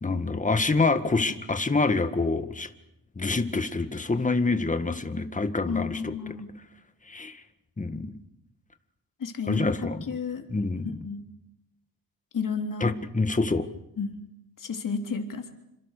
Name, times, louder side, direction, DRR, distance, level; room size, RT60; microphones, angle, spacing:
voice 1, 0.0-2.7 3.2-6.1 7.1-7.4 7.8-8.2 9.5-10.0 10.5-11.0 12.8-13.7, left 3 dB, 20° left, 9 dB, 1.8 m, -26 dB
voice 2, 5.7-6.5 9.2-10.5 10.8-11.2 12.3-12.9 14.0-14.2 14.6-15.5, left 5 dB, 65° left, 4 dB, 3.5 m, -32 dB
28.0 x 25.5 x 6.8 m, 0.85 s
wide cardioid pair, 135°, 35 cm